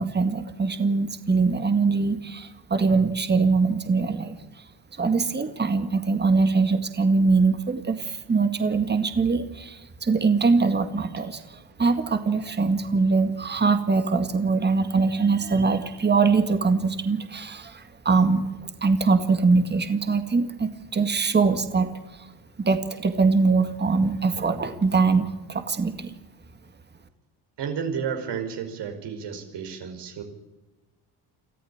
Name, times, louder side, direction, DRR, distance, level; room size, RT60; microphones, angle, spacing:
voice 1, 0.0-4.7 4.9-22.3 22.6-26.1, right 4 dB, 25° right, 9 dB, 2.0 m, -23 dB
voice 2, 27.6-30.2, right 7 dB, 70° right, 5 dB, 5.2 m, -31 dB
24.0 x 14.5 x 8.8 m, 1.1 s
cardioid pair, 105°, 43 cm